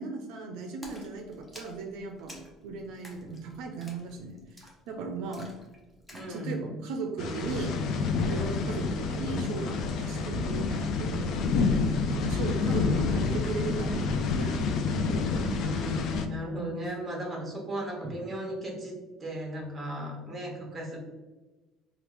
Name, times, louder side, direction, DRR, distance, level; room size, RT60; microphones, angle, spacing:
voice 1, 0.0-2.4 2.6-5.5 6.3-7.8 8.2-15.0 16.5-16.7 18.0-18.1, right 4 dB, 75° right, 3 dB, 0.4 m, -37 dB
Splash splatter, 0.8-6.4, equal, 10° left, 0.7 m, -51 dB
voice 2, 6.1-6.7 8.3-8.6 15.5-21.0, equal, 20° right, -2 dB, 1.0 m, -36 dB
sound 1, 7.2-16.3, left 4 dB, 55° left, 0.3 m, -28 dB
3.2 x 2.3 x 3.0 m, 1.2 s
cardioid pair, 120°, 0 cm